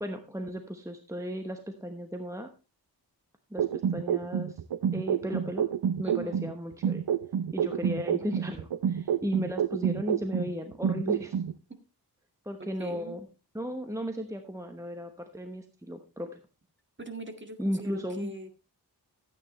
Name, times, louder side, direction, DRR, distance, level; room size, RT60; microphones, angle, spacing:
voice 1, 0.0-2.5 3.5-3.7 3.9-4.6 4.9-5.7 6.0-7.0 7.5-11.4 12.4-13.2 13.5-16.4 17.6-18.3, equal, 10° right, 5 dB, 1.0 m, -35 dB
sound 1, 3.6-6.5 6.8-10.5 10.8-11.5, right 8 dB, 80° right, 0.6 m, -28 dB
voice 2, 6.0-6.4 12.6-13.2 17.0-18.5, right 3 dB, 30° right, 5 dB, 1.8 m, -41 dB
13.5 x 8.8 x 3.1 m, 0.30 s
wide cardioid pair, 95°, 39 cm